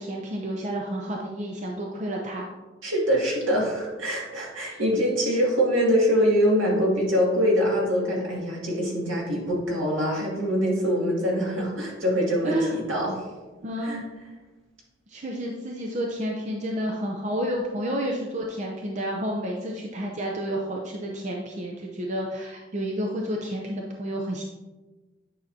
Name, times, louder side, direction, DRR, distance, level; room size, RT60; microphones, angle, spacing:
voice 1, 0.0-2.5 4.7-4.8 12.4-12.7 13.6-14.0 15.1-24.4, equal, 35° right, 0 dB, 0.6 m, -30 dB
voice 2, 2.8-13.2 13.8-14.0, equal, 75° right, -4 dB, 2.2 m, -24 dB
9.0 x 5.7 x 2.7 m, 1.2 s
head